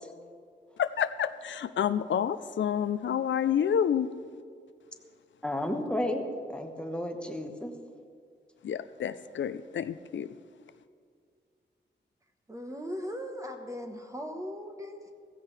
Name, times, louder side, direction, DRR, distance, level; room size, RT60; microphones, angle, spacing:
voice 1, 0.8-4.1 8.6-10.3, left 8 dB, 80° left, 13 dB, 0.5 m, -29 dB
voice 2, 5.4-6.2 6.5-7.7, left 1 dB, 5° left, 3 dB, 1.1 m, -32 dB
voice 3, 12.5-15.1, equal, 15° right, 4 dB, 1.1 m, -38 dB
16.0 x 15.5 x 3.3 m, 2.2 s
wide cardioid pair, 155°, 19 cm